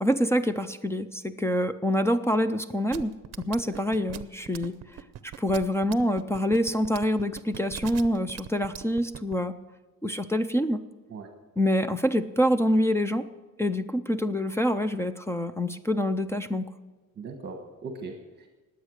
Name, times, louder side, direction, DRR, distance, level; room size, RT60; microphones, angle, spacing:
voice 1, 0.0-3.1 3.4-4.8 5.2-9.5 10.0-10.8 11.6-13.3 13.6-16.7, equal, 10° left, 11 dB, 0.3 m, -26 dB
sound 1, 2.9-9.3, right 11 dB, 50° right, 0.7 m, -40 dB
voice 2, 17.2-18.5, right 3 dB, 30° right, 4 dB, 1.4 m, -40 dB
20.0 x 8.2 x 6.4 m, 1.2 s
cardioid pair, 175°, 33 cm